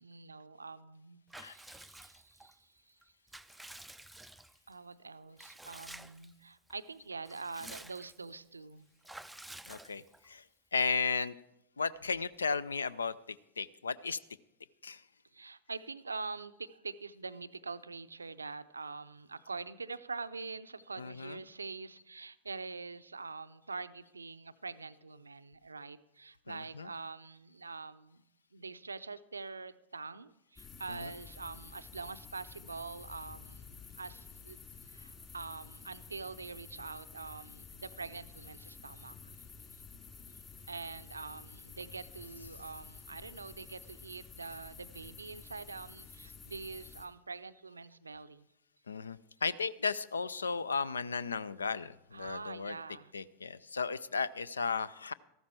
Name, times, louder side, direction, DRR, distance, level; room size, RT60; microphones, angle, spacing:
voice 1, 0.0-2.9 4.7-8.9 15.3-28.2 28.5-34.6 34.9-39.3 39.7-39.8 40.7-48.5 52.1-53.1, right 4 dB, 75° right, 13 dB, 0.5 m, -45 dB
Water / Bathtub (filling or washing) / Liquid, 1.3-2.5 3.0-4.7 5.4-6.3 6.7-6.8 7.1-8.3 9.0-10.3, right 1 dB, 5° right, 0.4 m, -51 dB
voice 2, 9.7-10.4 10.7-11.4 11.8-14.2 14.8-15.0 21.0-21.4 26.5-26.9 30.9-31.1 42.4-42.5 48.9-52.8 53.1-55.1, left 5 dB, 75° left, 19 dB, 0.4 m, -35 dB
sound 1, 30.6-47.1, left 5 dB, 25° left, 2.6 m, -51 dB
14.0 x 12.5 x 4.5 m, 0.88 s
figure-of-eight pair, 90°, 0 cm